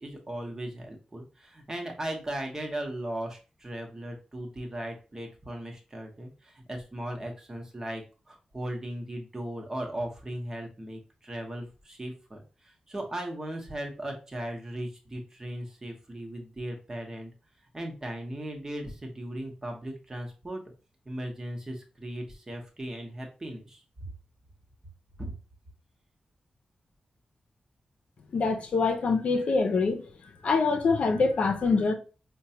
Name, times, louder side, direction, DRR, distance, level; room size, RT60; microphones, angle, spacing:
voice 1, 0.0-17.3 17.7-20.6 21.0-24.1 25.2-25.3, right 1 dB, 25° right, 0.9 m, -37 dB
voice 2, 28.3-30.1 30.4-31.9, left 4 dB, 70° left, 0.6 m, -25 dB
4.5 x 2.2 x 2.8 m
wide cardioid pair, 95°, 2 cm